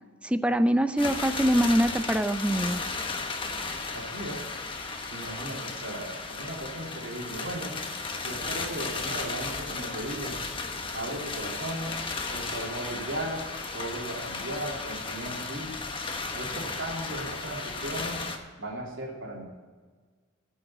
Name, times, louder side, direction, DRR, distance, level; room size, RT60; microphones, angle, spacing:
voice 1, 0.2-2.8, equal, 5° right, 11 dB, 0.5 m, -24 dB
sound 1, 1.0-18.4, left 3 dB, 25° left, 1.1 m, -35 dB
voice 2, 3.9-4.4 5.1-7.7 8.2-10.3 10.9-11.9 12.3-13.4 13.7-15.7 16.3-18.3 18.6-19.4, right 1 dB, 80° right, -2 dB, 3.2 m, -36 dB
14.0 x 6.4 x 7.3 m, 1.5 s
head